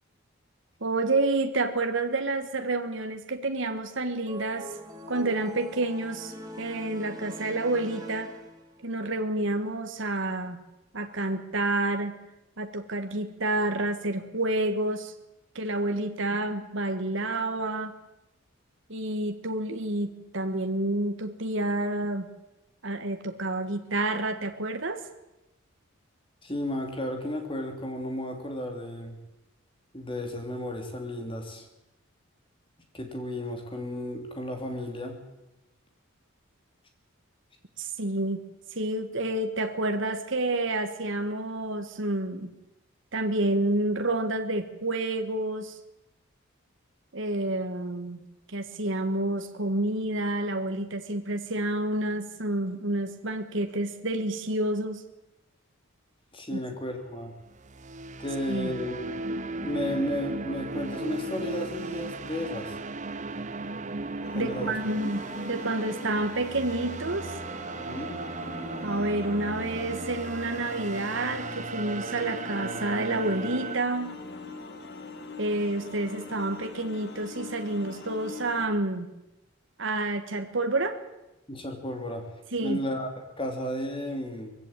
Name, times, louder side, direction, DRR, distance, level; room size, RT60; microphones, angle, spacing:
voice 1, 0.8-4.8 5.1-8.3 8.8-10.6 10.9-12.2 12.6-15.1 15.5-17.9 18.9-22.3 22.8-25.0 37.8-38.4 38.7-42.5 43.1-45.8 47.1-55.0 56.5-56.6 58.5-58.7 64.3-67.3 68.8-74.2 75.4-79.1 79.8-81.0 82.5-82.8, right 2 dB, 60° right, 6 dB, 1.6 m, -29 dB
sound 1, 4.3-8.9, left 1 dB, 20° right, 2.2 m, -42 dB
voice 2, 26.4-29.2 29.9-31.7 32.9-35.2 56.3-57.3 58.2-59.1 59.6-62.8 64.3-64.8 67.8-68.2 81.5-82.3 82.6-84.5, equal, 25° left, 4 dB, 3.3 m, -33 dB
sound 2, 57.5-73.8, right 3 dB, 35° right, 0.7 m, -36 dB
sound 3, 64.2-78.7, left 3 dB, 50° left, 1.9 m, -43 dB
20.5 x 16.0 x 9.0 m, 0.96 s
head